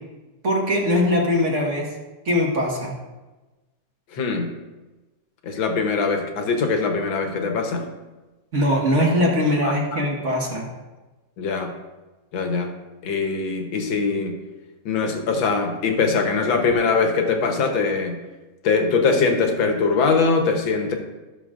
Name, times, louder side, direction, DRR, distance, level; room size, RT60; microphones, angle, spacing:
voice 1, 0.4-1.9 2.3-2.9 8.5-10.7, left 1 dB, 35° right, -1 dB, 1.7 m, -21 dB
voice 2, 4.1-4.5 5.4-7.9 9.6-10.0 11.4-11.7 12.3-12.7 13.0-14.4 14.9-18.2 18.6-20.9, left 4 dB, 65° left, 4 dB, 1.8 m, -22 dB
14.5 x 6.8 x 2.5 m, 1.2 s
omnidirectional pair, 2.3 m